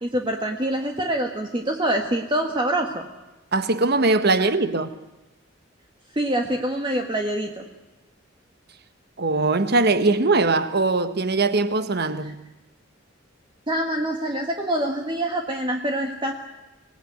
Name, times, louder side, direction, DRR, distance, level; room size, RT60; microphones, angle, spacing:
voice 1, 0.0-3.1 4.4-4.5 6.1-7.6 13.7-16.3, right 1 dB, 25° right, 1.5 m, -25 dB
voice 2, 3.5-5.0 9.2-12.4, right 3 dB, 55° right, 1.3 m, -21 dB
25.5 x 17.5 x 9.4 m
head